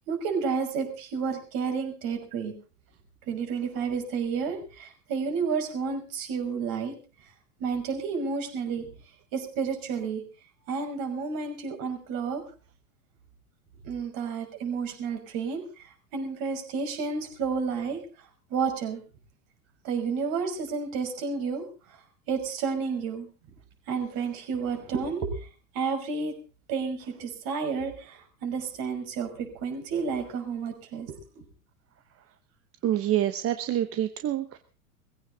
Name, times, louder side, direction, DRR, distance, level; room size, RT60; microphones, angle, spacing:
voice 1, 0.1-2.5 3.3-7.0 7.6-8.9 9.3-10.2 10.7-12.4 13.8-18.0 18.5-19.0 19.8-21.7 22.3-23.3 23.9-25.3 25.7-26.4 26.7-31.2, right 5 dB, 45° right, 4 dB, 5.9 m, -31 dB
voice 2, 32.8-34.6, right 12 dB, 30° right, 10 dB, 1.1 m, -27 dB
19.5 x 16.0 x 4.0 m, 0.35 s
hypercardioid pair, 105°, 45 cm